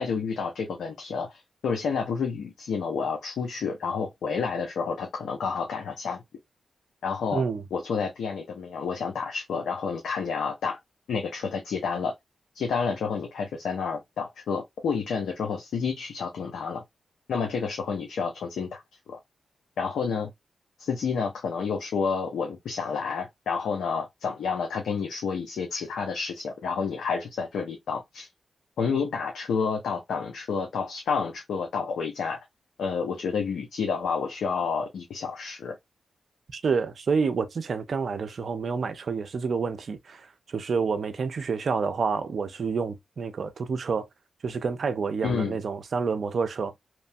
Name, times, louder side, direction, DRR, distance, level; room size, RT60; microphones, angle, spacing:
voice 1, 0.0-6.2 7.0-7.4 7.7-10.8 11.1-12.1 12.5-16.8 17.3-18.8 19.1-19.2 19.8-20.3 20.8-28.3 28.8-32.4 32.8-35.7 45.2-45.6, left 5 dB, 85° left, 0.5 m, -29 dB
voice 2, 7.3-7.6 36.5-44.1 44.4-46.8, right 5 dB, 65° right, 0.5 m, -28 dB
3.0 x 2.1 x 2.6 m
supercardioid pair, 40°, 0 cm